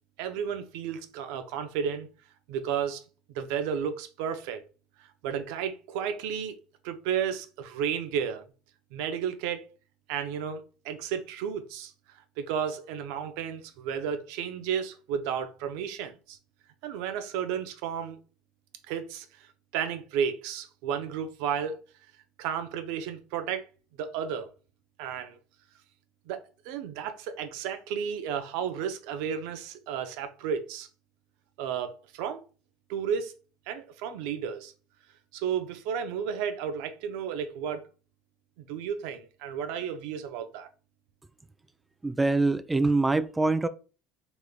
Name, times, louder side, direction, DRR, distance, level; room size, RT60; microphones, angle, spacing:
voice 1, 0.2-2.1 2.5-3.0 3.3-4.6 5.0-6.5 6.8-8.5 8.9-9.7 10.1-11.9 12.4-16.4 16.8-18.2 18.9-21.8 22.4-23.7 24.0-24.5 25.0-25.4 26.3-26.4 26.6-30.9 31.6-32.4 32.9-33.3 33.7-34.7 35.3-37.9 38.6-40.7, right 8 dB, 75° right, 0.5 m, -32 dB
voice 2, 42.0-43.7, right 3 dB, 15° right, 0.3 m, -24 dB
3.7 x 3.0 x 2.3 m
supercardioid pair, 90°, 0 cm